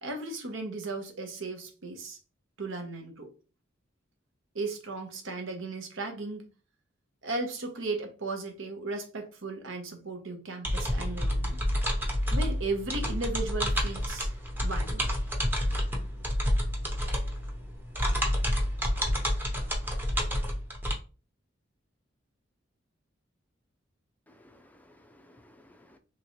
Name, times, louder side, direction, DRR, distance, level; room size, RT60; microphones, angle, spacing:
voice 1, 0.0-2.2 2.6-3.3 4.5-6.5 7.2-11.6 12.3-14.3 14.6-15.1, right 3 dB, 75° right, 1.0 m, -36 dB
sound 1, 10.6-20.9, equal, 10° right, 0.8 m, -29 dB
voice 2, 24.3-26.0, left 1 dB, 10° left, 0.4 m, -58 dB
3.7 x 3.0 x 3.0 m
head